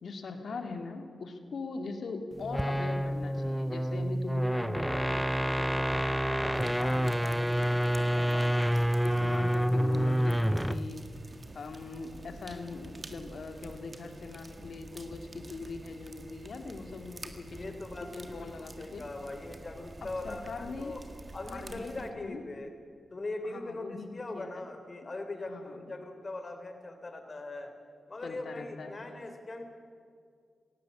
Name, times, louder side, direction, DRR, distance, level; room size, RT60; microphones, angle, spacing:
voice 1, 0.0-11.0 11.5-17.8 18.1-19.0 20.2-21.0 21.5-22.4 23.4-24.1 24.3-24.7 25.5-25.9 28.2-28.9, left 3 dB, 75° left, 6 dB, 2.2 m, -41 dB
sound 1, 2.4-10.9, equal, 5° right, 0.6 m, -28 dB
sound 2, 6.5-22.1, right 2 dB, 35° right, 1.8 m, -48 dB
voice 2, 17.5-21.0 21.3-22.7 23.1-27.7 28.1-29.6, left 2 dB, 40° left, 6 dB, 3.3 m, -40 dB
17.0 x 16.5 x 9.6 m, 2.2 s
cardioid pair, 60°, 0 cm